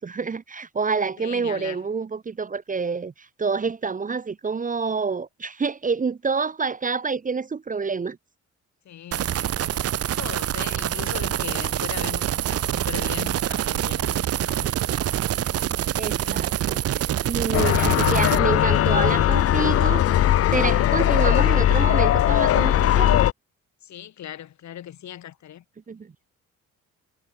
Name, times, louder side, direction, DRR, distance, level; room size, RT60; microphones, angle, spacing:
voice 1, 0.0-3.1 3.4-8.2 16.0-16.8 17.2-20.1 20.5-23.3 25.9-26.1, right 5 dB, 25° right, 0.9 m, -27 dB
voice 2, 1.2-1.9 8.8-14.8 15.1-15.3 16.2-16.5 23.8-25.6, left 11 dB, 70° left, 2.9 m, -39 dB
sound 1, 9.1-18.4, right 11 dB, 50° right, 0.7 m, -26 dB
sound 2, 17.5-23.3, left 12 dB, 50° left, 0.6 m, -19 dB
cardioid pair, 90°, 30 cm